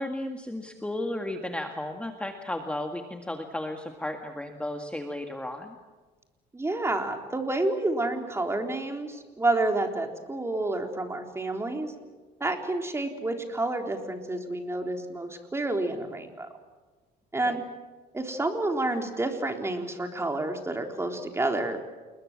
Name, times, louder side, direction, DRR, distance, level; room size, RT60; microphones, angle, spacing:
voice 1, 0.0-5.8 17.4-17.6, left 1 dB, 5° left, 4 dB, 1.9 m, -34 dB
voice 2, 6.5-11.9 12.4-16.5 17.3-17.6 18.1-22.0, right 2 dB, 15° right, 4 dB, 3.7 m, -29 dB
29.0 x 21.0 x 7.5 m, 1.3 s
cardioid pair, 110°, 17 cm